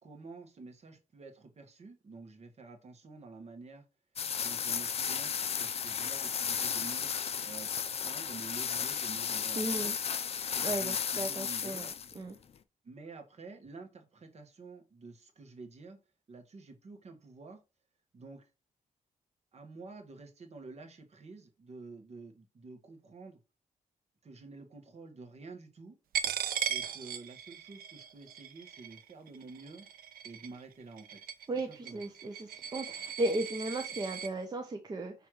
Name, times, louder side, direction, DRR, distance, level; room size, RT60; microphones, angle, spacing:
voice 1, 0.0-3.8 4.4-7.1 7.4-9.9 10.6-11.9 12.8-16.0 16.3-17.6 18.1-18.5 19.5-23.4 24.2-26.0 26.7-29.9 30.2-31.2 31.7-32.0, right 3 dB, 45° right, 1.5 m, -49 dB
sound 1, 4.2-12.2, left 7 dB, 45° left, 0.5 m, -34 dB
voice 2, 9.6-9.9 10.6-11.9 12.2-12.4 31.5-35.1, right 2 dB, 25° right, 0.7 m, -35 dB
Coin (dropping), 26.1-34.3, right 8 dB, 85° right, 0.6 m, -38 dB
6.2 x 3.3 x 4.6 m
wide cardioid pair, 120°, 15 cm